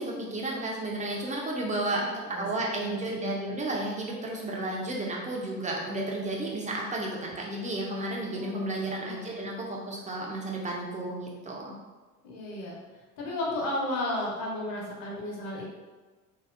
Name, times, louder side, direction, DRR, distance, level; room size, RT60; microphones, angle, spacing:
voice 1, 0.0-2.1 2.4-11.7, right 2 dB, 20° right, -2 dB, 0.4 m, -32 dB
voice 2, 2.0-2.5 2.8-3.7 8.3-8.7 9.0-9.5 12.2-12.8 13.2-15.7, left 1 dB, 50° left, -3 dB, 1.0 m, -34 dB
3.0 x 2.8 x 2.4 m, 1.3 s
figure-of-eight pair, 65°, 43 cm